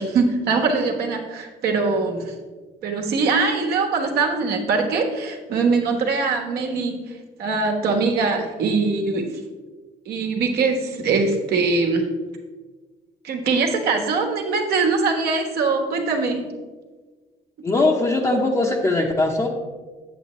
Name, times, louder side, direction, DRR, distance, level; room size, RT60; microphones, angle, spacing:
voice 1, 0.0-2.3 2.8-7.0 7.4-9.3 10.0-12.1 13.2-16.5 17.6-17.7, right 4 dB, 70° right, 2 dB, 1.3 m, -22 dB
voice 2, 17.6-19.5, left 2 dB, 20° left, -2 dB, 0.8 m, -20 dB
8.0 x 7.6 x 3.1 m, 1.4 s
cardioid pair, 110°, 17 cm